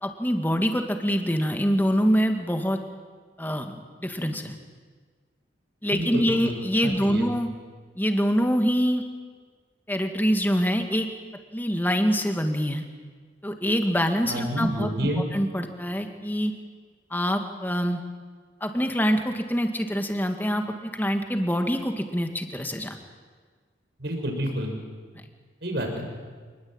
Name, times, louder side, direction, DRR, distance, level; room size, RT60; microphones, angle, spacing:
voice 1, 0.0-2.8 3.4-4.6 5.8-7.5 8.0-9.0 9.9-11.1 11.5-12.8 13.4-16.5 17.1-18.0 18.6-23.0, equal, 10° left, 5 dB, 2.0 m, -25 dB
voice 2, 5.9-7.3 14.3-15.2 24.0-24.7 25.6-26.1, equal, 65° right, 3 dB, 5.9 m, -29 dB
27.0 x 20.5 x 8.9 m, 1.5 s
head